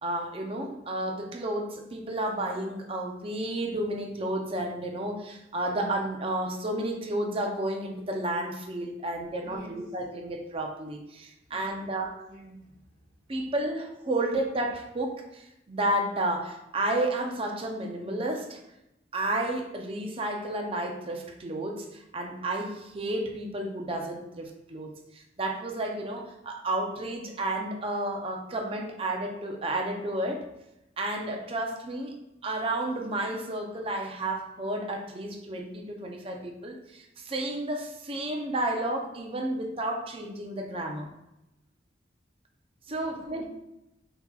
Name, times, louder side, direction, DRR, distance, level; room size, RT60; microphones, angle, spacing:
voice 1, 0.0-12.2 13.3-18.6 19.1-30.5 31.0-32.2 32.4-41.1 42.9-43.4, right 1 dB, 30° right, 2 dB, 0.5 m, -32 dB
voice 2, 9.1-9.8 11.5-13.1 42.8-43.5, right 1 dB, 50° right, -7 dB, 1.4 m, -50 dB
5.7 x 2.8 x 2.3 m, 0.88 s
head